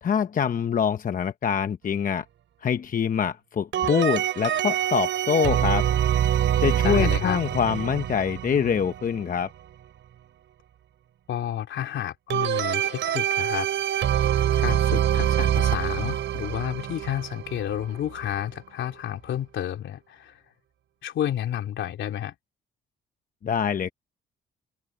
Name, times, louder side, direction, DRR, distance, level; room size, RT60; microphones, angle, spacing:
voice 1, 0.0-2.2 2.6-5.9 6.6-9.5 23.4-23.9, left 7 dB, 45° left, 0.9 m, -25 dB
sound 1, 3.7-9.3 12.3-18.4, right 11 dB, 70° right, 4.1 m, -25 dB
voice 2, 6.8-7.4 11.3-14.1 14.6-20.4 21.0-22.3, left 11 dB, 70° left, 3.1 m, -31 dB
cardioid pair, 90°, 20 cm